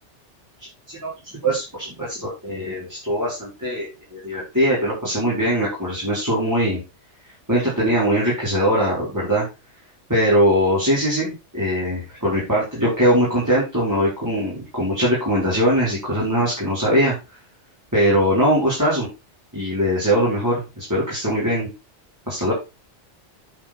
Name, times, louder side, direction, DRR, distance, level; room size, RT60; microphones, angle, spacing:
voice 1, 1.4-6.8 7.5-9.4 10.1-17.1 17.9-19.1 19.5-21.7 22.3-22.5, equal, 15° right, -8 dB, 4.6 m, -21 dB
10.0 x 5.2 x 4.4 m, 0.27 s
omnidirectional pair, 1.2 m